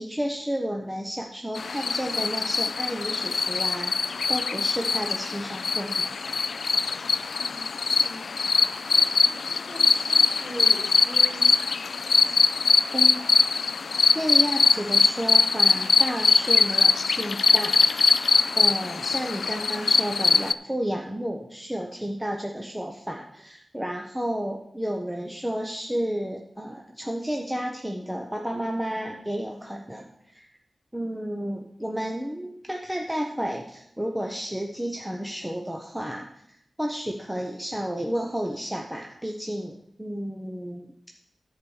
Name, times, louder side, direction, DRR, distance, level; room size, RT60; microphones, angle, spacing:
voice 1, 0.0-3.9 4.3-6.1 12.9-13.2 14.1-30.5 30.9-40.8, equal, 5° right, 1 dB, 0.8 m, -32 dB
sound 1, 1.5-20.5, left 5 dB, 75° left, 0.3 m, -22 dB
voice 2, 8.0-8.6 8.9-9.0 9.3-11.6, right 1 dB, 40° right, -2 dB, 3.0 m, -41 dB
11.0 x 4.8 x 7.0 m, 0.74 s
wide cardioid pair, 115°, 0 cm